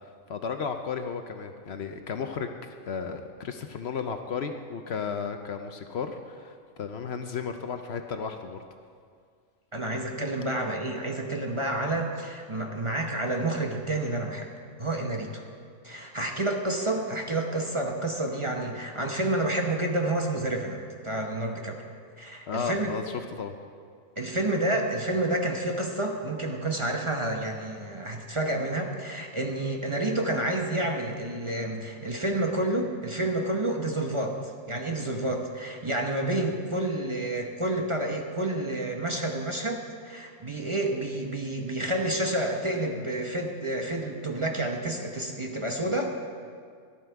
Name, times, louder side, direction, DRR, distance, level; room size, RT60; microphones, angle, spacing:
voice 1, 0.0-8.6 22.5-23.5, left 6 dB, 60° left, 6 dB, 0.9 m, -34 dB
voice 2, 9.7-14.5 14.8-15.4 15.8-21.8 22.2-22.9 24.2-46.1, right 1 dB, 25° right, 1 dB, 0.9 m, -29 dB
13.0 x 11.5 x 4.6 m, 2.1 s
omnidirectional pair, 1.3 m